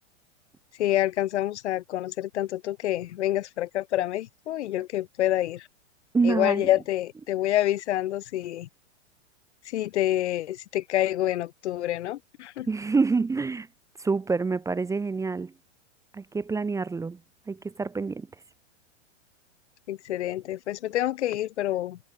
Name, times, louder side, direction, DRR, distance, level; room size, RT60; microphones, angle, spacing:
voice 1, 0.8-5.7 6.2-8.7 9.7-12.7 19.9-22.0, left 13 dB, 70° left, 1.8 m, -27 dB
voice 2, 6.1-6.7 12.7-13.7 14.0-15.5 16.1-17.2 17.5-18.3, right 4 dB, 10° right, 1.0 m, -27 dB
hypercardioid pair, 125°, 36 cm